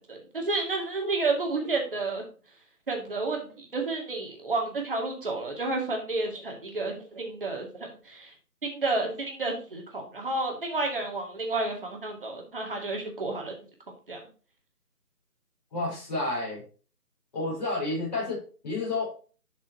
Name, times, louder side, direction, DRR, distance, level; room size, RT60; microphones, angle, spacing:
voice 1, 0.0-2.2 2.9-8.3 8.6-13.6 14.1-14.2, right 3 dB, 35° right, 1 dB, 2.4 m, -31 dB
voice 2, 15.7-16.6 17.3-19.2, left 2 dB, 30° left, -5 dB, 5.2 m, -30 dB
11.0 x 6.0 x 2.9 m, 0.37 s
figure-of-eight pair, 170°, 45 cm